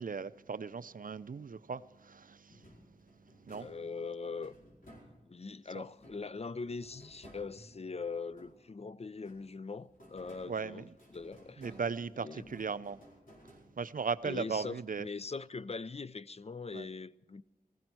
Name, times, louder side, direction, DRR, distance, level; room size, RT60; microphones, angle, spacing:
voice 1, 0.0-2.7 3.5-3.7 5.7-5.8 10.5-10.9 11.6-13.0 13.4-15.1 16.7-16.9, right 5 dB, 65° right, 0.4 m, -37 dB
sound 1, 2.5-5.5 6.0-8.8 9.2-14.1, equal, 65° left, 4.8 m, -58 dB
voice 2, 3.6-4.6 5.3-11.6 12.2-12.5 14.2-17.4, left 4 dB, 40° left, 0.4 m, -42 dB
16.5 x 15.5 x 4.6 m
wide cardioid pair, 45°, 15 cm